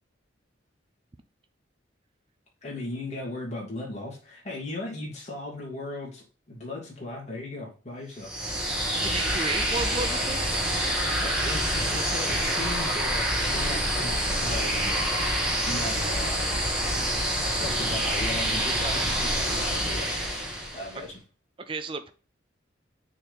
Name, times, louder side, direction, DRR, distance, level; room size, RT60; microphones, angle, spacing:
voice 1, 2.6-8.3 11.2-15.0 15.7-16.6 17.6-20.2 20.7-21.2, left 2 dB, 35° left, -3 dB, 2.7 m, -37 dB
sound 1, 8.2-21.0, equal, 5° right, 1.7 m, -27 dB
voice 2, 9.0-10.6 20.9-21.0 21.6-22.1, right 3 dB, 25° right, 9 dB, 0.5 m, -33 dB
6.9 x 4.2 x 3.4 m, 0.35 s
head